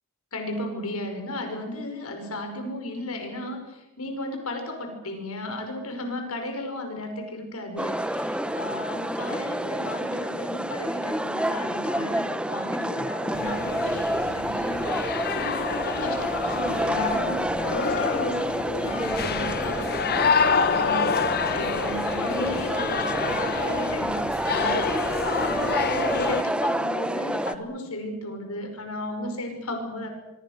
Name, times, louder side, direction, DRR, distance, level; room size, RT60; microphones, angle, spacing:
voice 1, 0.3-30.1, left 1 dB, 85° left, 5 dB, 5.6 m, -35 dB
sound 1, 7.8-27.6, right 1 dB, 5° right, 0.8 m, -28 dB
sound 2, 13.3-26.4, left 5 dB, 45° left, 0.9 m, -28 dB
25.5 x 25.0 x 6.6 m, 0.95 s
head